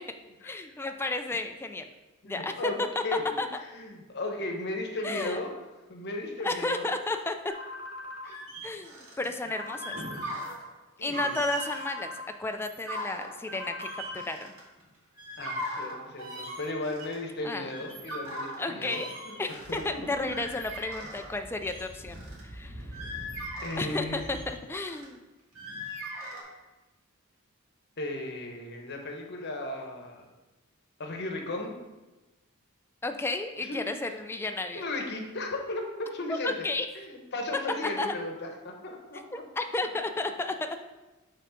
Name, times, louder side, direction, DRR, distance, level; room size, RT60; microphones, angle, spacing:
voice 1, 0.4-1.9 2.2-2.7 3.4-3.5 5.0-5.4 6.4-7.3 8.6-10.0 11.0-12.1 12.4-13.9 14.1-14.5 17.4-17.7 18.6-19.1 19.4-23.0 23.8-25.2 33.0-34.8 36.3-36.9 37.8-38.1 39.3-40.8, left 2 dB, 10° left, 6 dB, 0.3 m, -32 dB
voice 2, 2.2-2.8 3.0-3.4 3.7-5.5 5.9-6.9 8.2-8.4 11.0-11.3 15.4-20.3 21.0-21.1 23.6-24.3 28.0-30.3 31.0-31.7 33.6-34.1 34.7-36.7 36.9-39.4, left 2 dB, 50° left, 3 dB, 0.9 m, -36 dB
sound 1, 7.5-8.3 9.5-10.3 11.5-12.3 13.5-14.3, left 2 dB, 60° right, 1.1 m, -41 dB
sound 2, 8.2-9.3 9.7-10.6 11.0-11.9 12.5-14.8 15.2-17.2 17.5-21.3 21.6-22.4 22.8-25.1 25.5-26.4, equal, 80° right, 2.2 m, -39 dB
Speech / Wind, 19.6-24.5, right 1 dB, 25° right, 1.6 m, -46 dB
5.9 x 3.6 x 5.7 m, 1.1 s
head